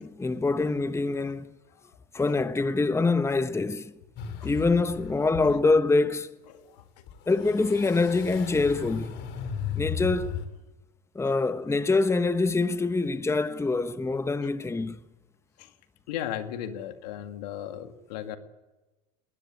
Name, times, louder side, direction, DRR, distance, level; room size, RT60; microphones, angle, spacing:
voice 1, 0.0-1.5 2.1-3.9 4.4-6.3 7.3-9.2 9.7-10.4 11.1-15.0, left 3 dB, 15° left, 1.1 m, -25 dB
sound 1, 4.2-5.3 5.7-5.8 7.1-10.5, left 7 dB, 55° left, 4.1 m, -36 dB
voice 2, 6.5-6.8 15.6-15.7 16.1-18.4, left 10 dB, 75° left, 2.1 m, -36 dB
21.0 x 19.0 x 9.7 m
hypercardioid pair, 75°, 21 cm